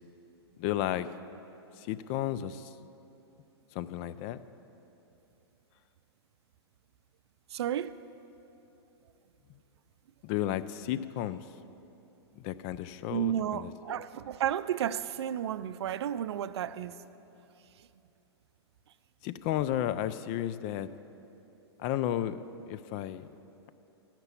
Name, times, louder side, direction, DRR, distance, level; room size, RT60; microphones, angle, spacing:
voice 1, 0.6-1.1 1.8-2.7 3.7-4.4 10.2-11.5 12.4-14.0 19.2-20.9 21.8-22.4 22.7-23.3, left 12 dB, 40° left, 0.4 m, -33 dB
voice 2, 7.5-8.0 13.1-17.0, right 10 dB, 70° right, 0.4 m, -32 dB
13.5 x 5.9 x 8.3 m
hypercardioid pair, 125°, 14 cm